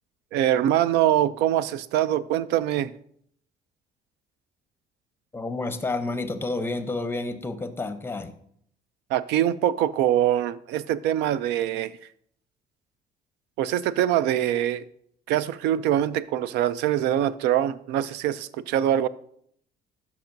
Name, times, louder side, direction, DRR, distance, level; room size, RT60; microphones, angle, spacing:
voice 1, 0.3-2.9 9.1-11.9 13.6-14.9 15.3-19.1, right 11 dB, 85° right, 0.4 m, -23 dB
voice 2, 5.3-8.3, left 3 dB, 15° left, 0.7 m, -30 dB
11.5 x 5.9 x 2.6 m
cardioid pair, 110°, 17 cm